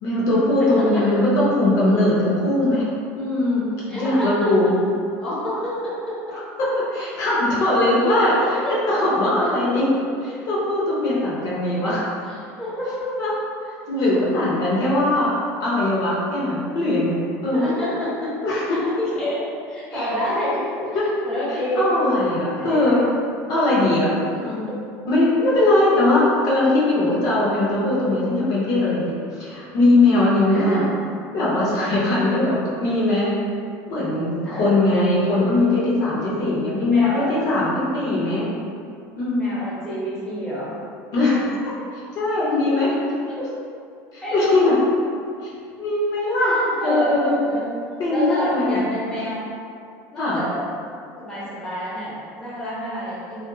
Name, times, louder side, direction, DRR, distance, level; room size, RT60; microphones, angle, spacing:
voice 1, 0.0-2.9 3.2-4.7 6.6-8.4 8.9-9.9 10.3-12.3 13.2-13.3 13.6-15.3 15.6-17.7 18.4-18.8 19.9-20.4 20.9-21.1 21.8-23.0 23.5-24.2 24.4-24.7 25.1-30.8 31.3-33.3 33.9-38.5 39.2-39.5 41.1-41.4 41.9-42.9 43.4-43.5 44.1-44.8 45.8-47.4 48.0-48.8 50.2-50.4, left 2 dB, 50° left, -7 dB, 0.7 m, -20 dB
voice 2, 3.9-4.3 5.2-6.4 8.2-8.7 9.6-9.7 12.6-13.1 17.5-18.4 18.7-20.7 21.2-21.9 22.5-23.0 24.2-24.7 30.5-30.8 34.4-34.7 36.9-37.4 39.4-40.7 41.2-41.5 42.5-43.2 44.2-44.7 46.4-47.7 48.1-49.4 50.1-50.6 51.2-53.4, equal, 10° left, -9 dB, 0.7 m, -28 dB
2.6 x 2.5 x 2.2 m, 2.4 s
cardioid pair, 140°, 8 cm